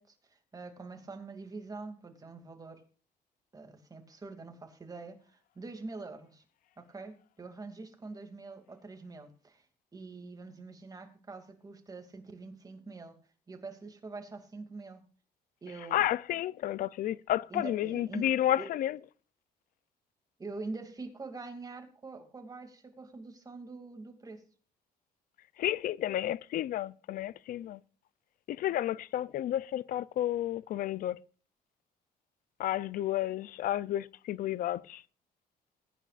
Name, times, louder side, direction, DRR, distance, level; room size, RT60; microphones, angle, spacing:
voice 1, 0.0-2.8 3.5-6.4 6.8-9.6 9.9-13.2 13.5-15.0 15.6-16.0 17.5-18.3 18.6-18.7 20.4-24.4, right 3 dB, 25° right, 2.6 m, -44 dB
voice 2, 15.9-19.0 25.6-27.8 28.5-31.2 32.6-35.0, left 12 dB, 65° left, 0.5 m, -31 dB
21.0 x 9.9 x 2.5 m
cardioid pair, 100°, 16 cm